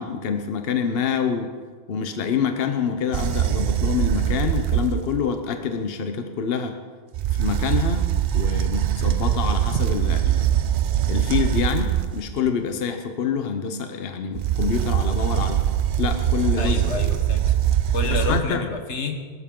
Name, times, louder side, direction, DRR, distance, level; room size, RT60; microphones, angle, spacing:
voice 1, 0.0-1.5 1.9-6.8 7.3-10.5 11.0-15.6 16.0-16.8 18.1-18.6, left 6 dB, 60° left, 6 dB, 1.0 m, -26 dB
sound 1, 3.1-5.3 7.1-12.3 14.3-18.4, right 11 dB, 60° right, 0.6 m, -22 dB
voice 2, 16.6-17.5 17.9-19.1, left 4 dB, 85° left, 6 dB, 1.5 m, -28 dB
18.5 x 12.5 x 3.8 m, 1.5 s
omnidirectional pair, 1.2 m